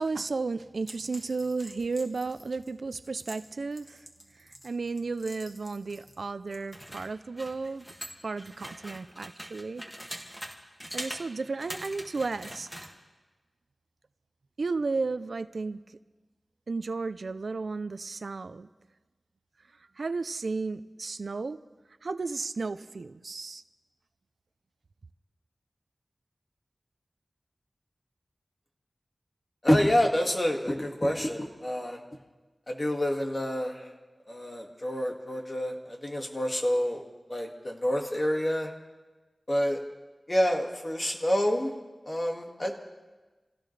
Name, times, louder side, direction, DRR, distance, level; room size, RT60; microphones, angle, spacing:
voice 1, 0.0-4.1 4.3-7.9 8.2-9.8 10.9-12.9 14.6-16.0 16.7-18.7 20.0-21.6 22.0-23.6, right 3 dB, 75° right, 0.5 m, -33 dB
sound 1, 0.8-6.2 6.5-10.5 10.8-11.2 11.6-12.9, equal, ahead, 2.1 m, -43 dB
voice 2, 29.6-32.0 32.7-33.9 34.3-37.0 37.3-38.7 39.5-39.8 40.3-41.7 42.1-42.7, equal, 30° left, 2.1 m, -27 dB
26.5 x 16.5 x 3.3 m
wide cardioid pair, 80°, 0 cm